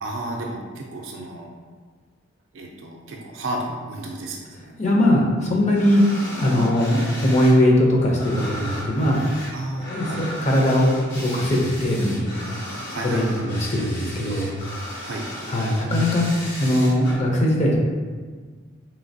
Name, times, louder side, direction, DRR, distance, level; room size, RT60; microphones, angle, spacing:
voice 1, 0.0-1.5 2.5-4.8 9.5-10.2 12.9-13.4 15.0-15.3, right 1 dB, 70° right, 0 dB, 0.4 m, -32 dB
voice 2, 4.8-6.0 6.4-9.2 9.8-12.7 13.0-14.5 15.5-17.8, left 1 dB, 35° left, -2 dB, 0.5 m, -20 dB
sound 1, 5.7-7.6 7.8-17.1, left 1 dB, 60° left, 1.0 m, -36 dB
3.1 x 2.8 x 2.6 m, 1.5 s
head